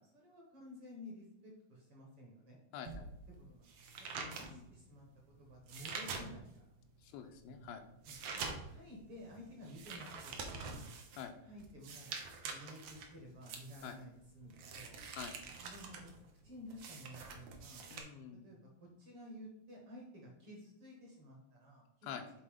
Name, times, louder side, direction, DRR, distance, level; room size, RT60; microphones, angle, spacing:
voice 1, 0.1-2.6 3.4-3.6 4.0-6.6 7.5-7.7 8.0-10.8 11.4-12.1 12.4-15.0 15.6-16.1 16.4-17.9 18.4-22.1, left 1 dB, 50° right, -1 dB, 1.9 m, -53 dB
voice 2, 2.7-3.1 4.2-4.7 7.0-7.8 11.2-11.3 13.8-14.0 15.2-15.4 17.9-18.4 22.0-22.2, left 8 dB, 85° left, 6 dB, 2.5 m, -47 dB
sound 1, 2.8-6.7 7.1-18.0, right 4 dB, 70° right, 1.4 m, -46 dB
7.6 x 4.1 x 5.2 m, 0.84 s
omnidirectional pair, 4.2 m